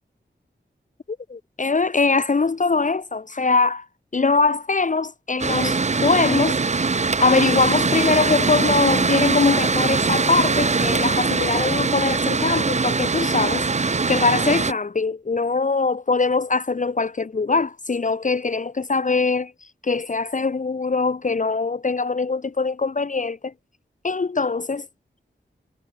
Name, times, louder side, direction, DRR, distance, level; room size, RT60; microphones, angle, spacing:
voice 1, 1.3-3.8 4.1-6.6 7.2-19.5 19.8-23.5 24.0-24.9, left 4 dB, 40° left, 0.7 m, -22 dB
Mechanical fan, 5.4-14.7, right 4 dB, 35° right, 0.7 m, -22 dB
wide cardioid pair, 70°, 20 cm